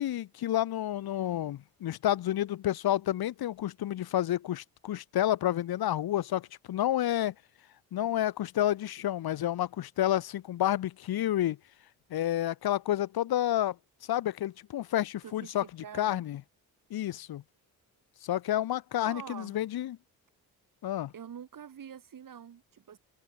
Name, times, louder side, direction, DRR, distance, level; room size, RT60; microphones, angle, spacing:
voice 1, 0.0-7.3 7.9-11.6 12.1-13.8 14.1-16.4 16.9-17.4 18.2-20.0 20.8-21.1, left 12 dB, 80° left, 2.3 m, -30 dB
voice 2, 15.2-16.2 18.9-19.6 21.1-23.0, right 8 dB, 60° right, 6.7 m, -46 dB
cardioid pair, 80°, 37 cm